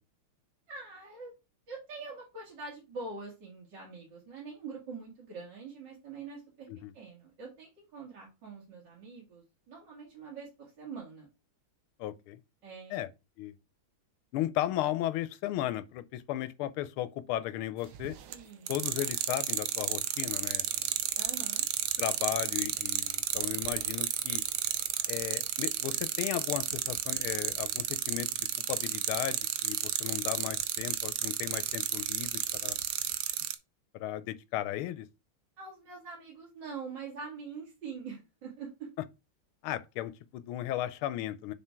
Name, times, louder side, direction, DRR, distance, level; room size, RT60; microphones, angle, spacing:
voice 1, 0.7-1.3 1.7-6.7 6.9-11.3 12.6-13.0 18.3-18.7 21.2-21.6 35.6-38.9, right 4 dB, 55° right, 2.5 m, -44 dB
voice 2, 12.0-12.4 12.9-13.1 13.4-13.5 14.3-18.1 18.7-20.7 22.0-24.4 25.1-28.3 28.7-32.8 33.9-35.1 39.6-41.5, left 13 dB, 85° left, 1.5 m, -35 dB
sound 1, 17.9-18.3 18.7-33.5, right 12 dB, 70° right, 1.0 m, -31 dB
6.7 x 3.6 x 4.5 m
omnidirectional pair, 2.3 m